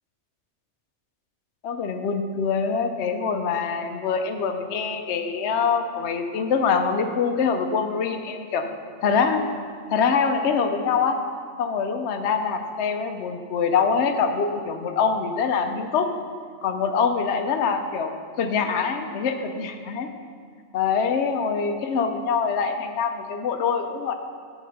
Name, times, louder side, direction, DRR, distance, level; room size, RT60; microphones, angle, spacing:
voice 1, 1.6-8.6 9.0-9.4 9.9-11.2 11.6-16.1 16.6-18.1 18.4-20.1 20.7-24.1, left 5 dB, 70° left, 6 dB, 0.9 m, -24 dB
7.3 x 5.8 x 6.9 m, 2.1 s
omnidirectional pair, 1.2 m